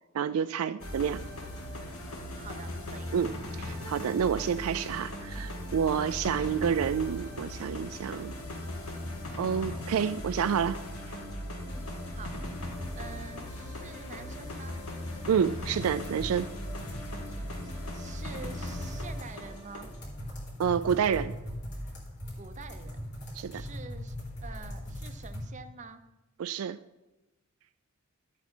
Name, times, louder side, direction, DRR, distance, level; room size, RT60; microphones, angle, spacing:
voice 1, 0.1-1.2 3.1-3.3 3.6-8.3 9.4-10.8 15.3-16.5 20.6-21.3 23.3-23.6 26.4-26.8, right 7 dB, 75° right, 12 dB, 0.4 m, -29 dB
sound 1, 0.8-20.0, left 1 dB, 80° left, 1.8 m, -38 dB
voice 2, 2.3-3.1 6.0-6.1 11.7-12.3 13.0-14.8 17.3-19.9 22.4-23.0 23.5-24.2 24.4-26.0, right 4 dB, 35° right, 9 dB, 0.7 m, -47 dB
sound 2, 15.5-25.4, equal, 55° left, 3.8 m, -41 dB
13.0 x 8.3 x 4.4 m, 1.0 s
head